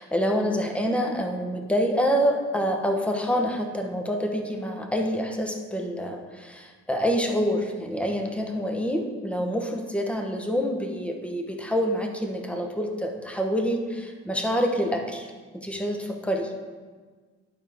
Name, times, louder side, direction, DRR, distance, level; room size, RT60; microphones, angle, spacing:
voice 1, 0.0-15.3 15.5-16.5, equal, 5° left, 3 dB, 1.0 m, -27 dB
11.0 x 4.6 x 3.5 m, 1.4 s
cardioid pair, 90°, 30 cm